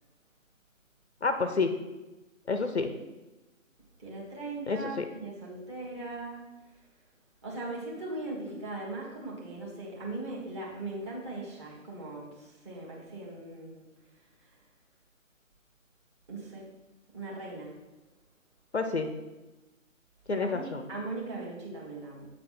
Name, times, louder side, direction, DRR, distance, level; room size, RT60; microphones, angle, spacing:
voice 1, 1.2-1.7 2.5-2.9 4.7-5.1 18.7-19.1 20.3-20.8, left 4 dB, 55° left, 8 dB, 0.6 m, -29 dB
voice 2, 4.0-6.4 7.4-13.8 16.3-16.6 17.1-17.7 20.3-22.3, right 2 dB, 20° right, -5 dB, 1.4 m, -39 dB
7.4 x 3.3 x 5.8 m, 1.1 s
figure-of-eight pair, 150°, 40 cm